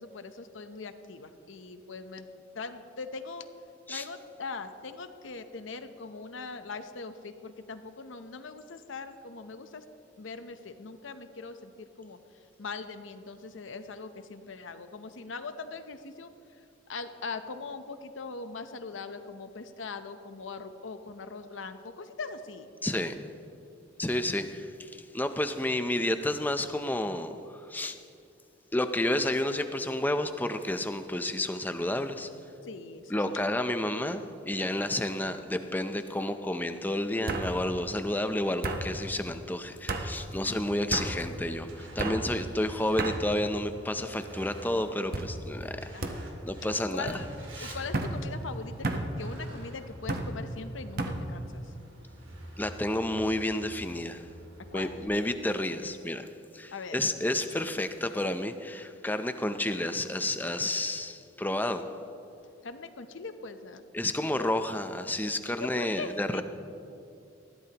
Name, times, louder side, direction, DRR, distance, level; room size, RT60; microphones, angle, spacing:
voice 1, 0.0-2.3 2.5-3.5 3.9-9.8 10.2-12.2 12.6-16.3 16.9-22.7 32.6-33.4 40.4-40.6 45.9-46.2 46.9-47.3 47.6-51.7 54.7-55.0 56.7-57.0 62.6-63.8 64.2-64.5 65.6-66.4, left 4 dB, 80° left, 9 dB, 0.8 m, -41 dB
voice 2, 22.8-23.1 24.0-27.3 27.7-28.0 28.7-32.3 33.1-47.1 47.6-47.8 52.6-54.2 54.7-56.3 56.5-61.8 63.9-66.4, left 1 dB, 10° left, 8 dB, 0.6 m, -30 dB
sound 1, 33.8-34.2 34.6-35.1 36.2-36.3 37.3-37.5 38.6-38.8 39.9-40.1 40.9-41.1 42.0-42.2 43.0-43.2 43.9-44.3 45.1-45.3 46.0-46.2 47.1-47.2 47.9-48.1 48.8-49.1 50.1-50.3 51.0-51.2, right 2 dB, 50° right, 1.1 m, -32 dB
Truck, 40.5-55.0, right 1 dB, 90° right, 2.5 m, -48 dB
20.0 x 14.5 x 2.9 m, 2.7 s
head